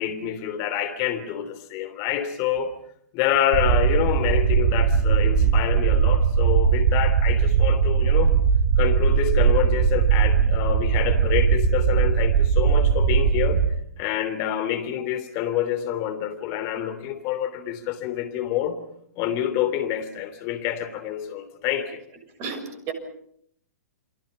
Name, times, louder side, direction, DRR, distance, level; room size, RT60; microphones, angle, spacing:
voice 1, 0.0-2.7 3.1-8.4 8.8-13.7 14.0-18.8 19.2-22.0, left 10 dB, 40° left, 9 dB, 3.2 m, -27 dB
sound 1, 3.5-13.7, right 7 dB, 55° right, 3.4 m, -20 dB
voice 2, 22.4-22.9, right 5 dB, 35° right, 6 dB, 6.4 m, -32 dB
29.5 x 24.5 x 5.6 m, 0.71 s
figure-of-eight pair, 115°, 9 cm